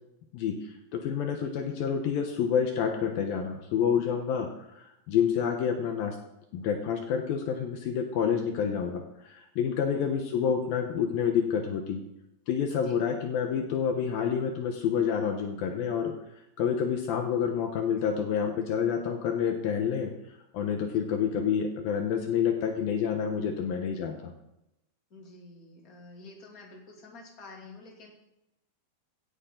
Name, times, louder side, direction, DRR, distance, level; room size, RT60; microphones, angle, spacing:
voice 1, 0.9-4.5 4.8-6.2 6.5-12.0 12.5-16.1 16.6-20.1 20.5-24.3, left 7 dB, 70° left, 4 dB, 2.8 m, -28 dB
voice 2, 12.8-13.1 20.9-21.1 25.1-28.1, left 2 dB, 25° left, -1 dB, 2.8 m, -49 dB
16.5 x 11.0 x 3.9 m, 0.86 s
omnidirectional pair, 4.5 m